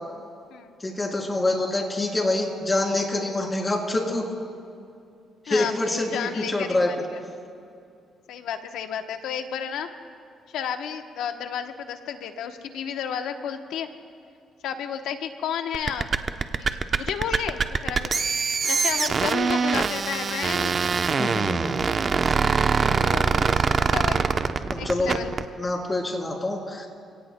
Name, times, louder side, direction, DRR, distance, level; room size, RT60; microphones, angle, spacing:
voice 1, 0.8-4.2 5.4-7.0 21.2-21.8 22.2-22.3 24.7-25.2 25.6-26.9, left 2 dB, 20° left, 0 dB, 3.2 m, -26 dB
voice 2, 6.1-7.2 8.3-9.9 10.5-13.9 14.6-16.1 16.6-18.1 18.6-20.7 22.8-24.3 24.8-25.3, left 8 dB, 85° left, 7 dB, 0.9 m, -32 dB
sound 1, 15.7-25.5, right 5 dB, 45° right, 0.7 m, -23 dB
29.0 x 17.5 x 2.2 m, 2.4 s
cardioid pair, 90°, 0 cm